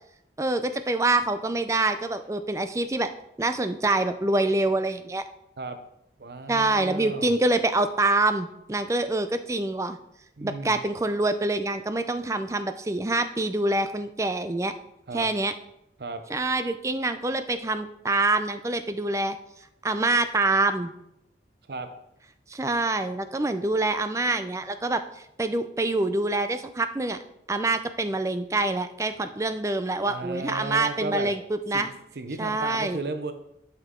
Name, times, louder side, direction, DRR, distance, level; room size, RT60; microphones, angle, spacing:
voice 1, 0.4-3.1 3.4-5.2 6.5-10.0 10.4-14.7 15.1-15.5 16.3-19.4 19.8-20.9 22.5-27.2 27.5-31.9 32.4-33.0, right 2 dB, 15° right, 10 dB, 0.4 m, -26 dB
voice 2, 6.2-7.3 10.4-10.8 15.1-15.3 16.0-16.2 21.7-21.9 30.0-31.3 31.7-33.3, right 3 dB, 65° right, 8 dB, 0.6 m, -34 dB
11.0 x 5.8 x 3.7 m, 0.81 s
head